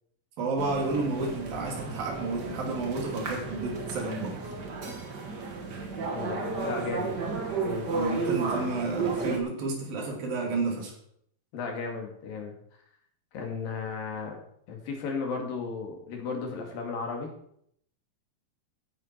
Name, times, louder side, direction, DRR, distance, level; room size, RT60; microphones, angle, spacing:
voice 1, 0.4-4.4 7.9-10.9, right 3 dB, 70° right, 1 dB, 4.5 m, -31 dB
sound 1, 0.6-9.4, right 4 dB, 45° right, 1.5 m, -33 dB
voice 2, 6.1-7.1 7.6-7.9 11.5-12.5 13.3-14.4 14.7-17.3, left 4 dB, 70° left, 2 dB, 3.9 m, -35 dB
15.0 x 10.0 x 4.5 m, 0.68 s
omnidirectional pair, 4.3 m